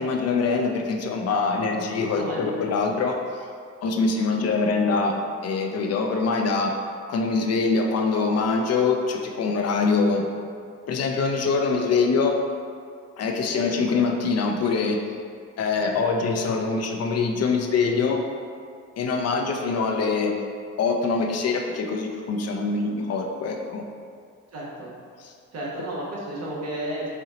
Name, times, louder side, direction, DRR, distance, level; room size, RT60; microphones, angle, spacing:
voice 1, 0.0-3.4 3.8-6.8 7.1-10.3 10.9-12.4 13.2-15.0 15.6-18.2 19.0-20.4 20.8-23.8 25.2-25.3, left 4 dB, 55° left, 2 dB, 0.5 m, -24 dB
voice 2, 2.1-2.7 4.3-4.5 13.4-13.7 15.9-16.0 24.5-24.9 25.5-27.1, right 1 dB, 55° right, -5 dB, 1.2 m, -33 dB
4.2 x 2.8 x 3.8 m, 2.2 s
cardioid pair, 90°, 30 cm